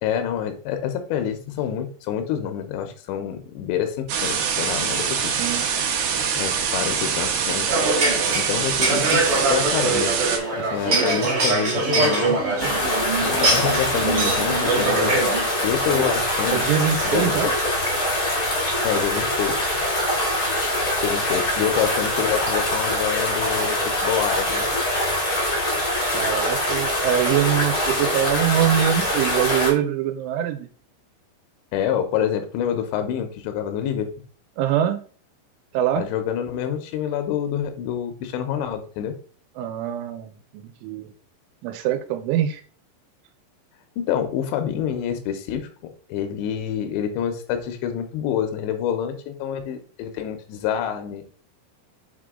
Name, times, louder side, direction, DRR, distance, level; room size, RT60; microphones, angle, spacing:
voice 1, 0.0-5.3 6.4-7.7 8.3-9.2 9.5-10.2 10.5-12.4 13.2-15.3 15.6-16.7 17.0-17.4 18.8-19.6 21.0-24.7 31.7-34.1 36.0-39.1 44.0-45.7 46.1-51.2, left 9 dB, 80° left, 7 dB, 2.9 m, -27 dB
sound 1, 4.1-10.4, right 6 dB, 70° right, 2.3 m, -24 dB
sound 2, 7.7-15.4, right 2 dB, 50° right, 1.6 m, -23 dB
sound 3, 12.6-29.7, left 1 dB, 55° left, 1.0 m, -23 dB
voice 2, 16.5-17.5 26.1-30.7 34.6-35.0 35.7-36.0 39.6-41.1 41.6-42.6, right 10 dB, 90° right, 8 dB, 3.1 m, -23 dB
6.8 x 3.8 x 3.6 m, 0.42 s
omnidirectional pair, 5.5 m